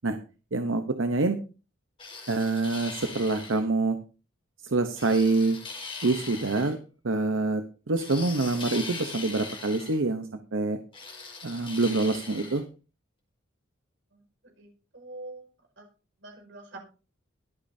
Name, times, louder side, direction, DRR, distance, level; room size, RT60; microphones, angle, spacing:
voice 1, 0.5-1.4 2.3-4.0 4.6-5.6 6.0-6.8 7.0-10.8 11.4-12.6, right 3 dB, 90° right, 7 dB, 0.9 m, -26 dB
sound 1, 2.0-3.6 5.0-6.7 8.0-10.0 10.9-12.6, left 4 dB, 30° left, 4.8 m, -40 dB
voice 2, 14.6-15.5 15.8-15.9 16.2-16.8, right 2 dB, 65° right, 3 dB, 5.2 m, -44 dB
22.0 x 8.6 x 2.7 m, 0.34 s
head